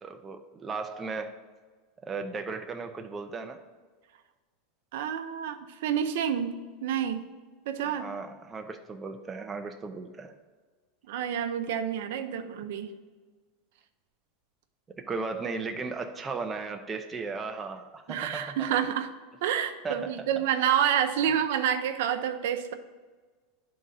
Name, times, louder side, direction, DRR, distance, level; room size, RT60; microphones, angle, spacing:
voice 1, 0.0-1.3 2.0-3.6 7.8-10.3 15.1-18.7 19.8-20.3, right 4 dB, 15° right, 4 dB, 0.5 m, -36 dB
voice 2, 4.9-6.5 6.8-7.2 7.7-8.1 11.1-12.9 18.1-19.1 19.4-22.7, right 9 dB, 75° right, 8 dB, 0.6 m, -28 dB
10.5 x 3.8 x 4.1 m, 1.4 s
supercardioid pair, 155°, 0 cm